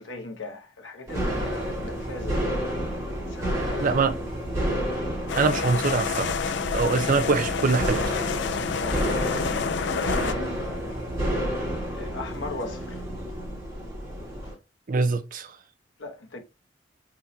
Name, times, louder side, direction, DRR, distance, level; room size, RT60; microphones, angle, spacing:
voice 1, 0.0-2.5 3.0-4.1 8.8-11.3 11.9-13.0 14.4-14.5 16.0-16.4, left 3 dB, 90° left, 1.0 m, -38 dB
sound 1, 1.1-14.5, equal, 20° right, 2.5 m, -30 dB
voice 2, 3.8-4.2 5.3-6.3 6.7-8.1 14.9-15.6, right 4 dB, 45° right, 0.5 m, -24 dB
sound 2, 5.3-10.3, left 6 dB, 70° left, 0.4 m, -29 dB
4.1 x 3.7 x 2.7 m
head